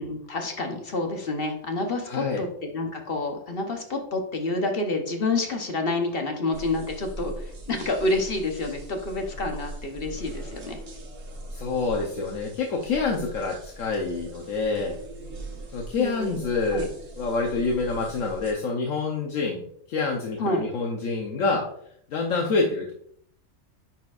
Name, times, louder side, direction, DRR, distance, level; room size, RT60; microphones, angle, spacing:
voice 1, 0.0-10.8 16.0-16.3 16.7-16.9 20.4-20.6, left 2 dB, 50° left, 4 dB, 1.0 m, -28 dB
voice 2, 2.1-2.4 11.5-15.0 15.7-16.9 17.2-21.6 22.1-22.9, left 4 dB, 80° left, 0 dB, 1.2 m, -27 dB
sound 1, 6.5-18.5, right 1 dB, 75° right, 1.5 m, -40 dB
9.4 x 4.3 x 2.4 m, 0.65 s
omnidirectional pair, 1.4 m